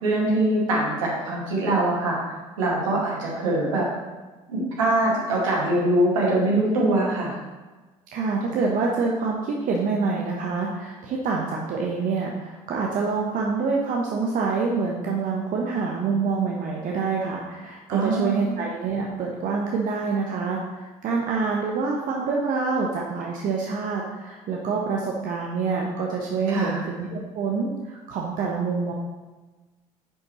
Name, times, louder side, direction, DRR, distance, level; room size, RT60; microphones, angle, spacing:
voice 1, 0.0-2.2 2.6-3.8 4.5-7.3 17.9-18.4 26.5-26.8, right 1 dB, 80° right, -4 dB, 2.0 m, -23 dB
voice 2, 8.1-28.9, right 4 dB, 55° right, -1 dB, 1.0 m, -26 dB
9.8 x 5.2 x 3.1 m, 1.2 s
hypercardioid pair, 60°, 17 cm